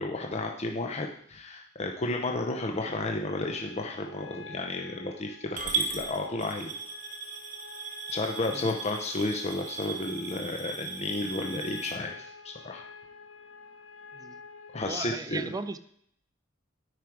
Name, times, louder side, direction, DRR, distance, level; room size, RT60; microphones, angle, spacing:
voice 1, 0.0-6.7 8.1-12.9 14.7-15.5, left 2 dB, 35° left, 2 dB, 0.6 m, -32 dB
sound 1, 3.3-14.9, left 5 dB, 80° left, 0.8 m, -48 dB
Coin (dropping) / Glass, 5.6-11.9, right 5 dB, 45° right, 1.4 m, -37 dB
voice 2, 14.8-15.8, right 3 dB, 20° right, 12 dB, 0.4 m, -37 dB
9.3 x 5.0 x 4.6 m, 0.68 s
head